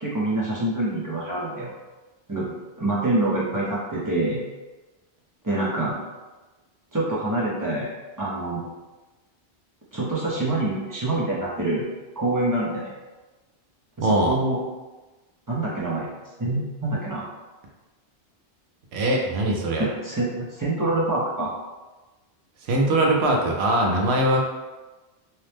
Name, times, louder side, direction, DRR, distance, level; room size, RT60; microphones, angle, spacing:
voice 1, 0.0-1.7 2.3-2.5 2.8-4.4 5.4-6.0 6.9-7.9 8.2-8.7 9.9-11.8 12.2-12.9 14.0-14.6 15.5-16.1 16.4-17.3 19.8-21.5, right 2 dB, 25° right, -6 dB, 0.4 m, -26 dB
voice 2, 14.0-14.4 18.9-19.9 22.6-24.4, right 1 dB, 80° right, 0 dB, 0.8 m, -21 dB
2.8 x 2.0 x 3.2 m, 1.2 s
omnidirectional pair, 1.1 m